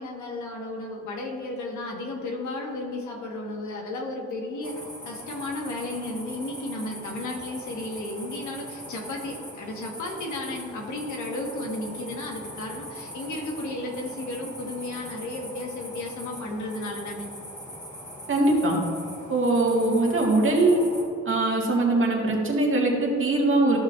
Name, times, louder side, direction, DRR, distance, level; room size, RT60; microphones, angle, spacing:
voice 1, 0.0-17.3, left 2 dB, 75° left, 0 dB, 1.6 m, -34 dB
sound 1, 4.6-21.0, equal, 25° left, 2.0 m, -41 dB
voice 2, 18.3-18.8 19.3-20.8 21.2-23.8, right 2 dB, 45° right, -2 dB, 2.0 m, -22 dB
14.0 x 6.2 x 2.6 m, 2.6 s
cardioid pair, 95°, 30 cm